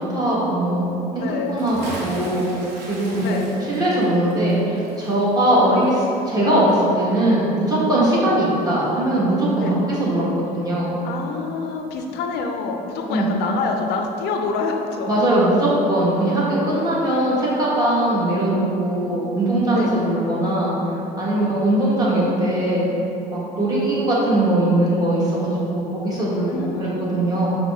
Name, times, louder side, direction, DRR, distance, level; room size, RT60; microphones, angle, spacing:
voice 1, 0.0-2.5 2.9-10.9 13.1-13.3 15.1-20.7 21.2-22.9 23.3-25.4 25.7-27.5, right 1 dB, 20° right, -8 dB, 1.3 m, -20 dB
voice 2, 1.2-1.6 3.2-3.5 9.6-9.8 11.0-15.2 19.7-19.9 26.5-27.2, left 4 dB, 80° left, 3 dB, 0.4 m, -27 dB
Bathtub (filling or washing) / Splash splatter, 1.4-6.4 6.7-6.8, right 1 dB, 75° right, 0.9 m, -38 dB
5.6 x 2.1 x 3.5 m, 2.9 s
cardioid pair, 110°, 17 cm